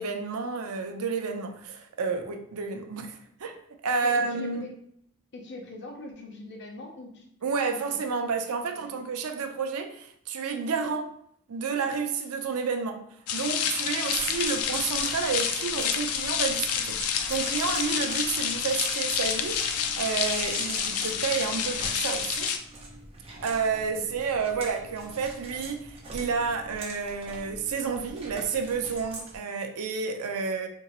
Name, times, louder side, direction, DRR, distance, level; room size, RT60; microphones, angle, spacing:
voice 1, 0.0-3.6 3.8-4.6 7.4-11.1 11.5-13.0 13.3-22.5 23.4-30.7, right 5 dB, 80° right, 6 dB, 0.5 m, -30 dB
voice 2, 4.0-4.7 5.3-7.3 7.7-7.8 8.7-9.0, left 2 dB, 50° left, 2 dB, 0.7 m, -42 dB
sound 1, 13.3-22.6, left 8 dB, 80° left, 0.4 m, -29 dB
sound 2, 14.1-29.4, right 2 dB, 25° right, 0.7 m, -42 dB
3.6 x 2.9 x 3.0 m, 0.69 s
head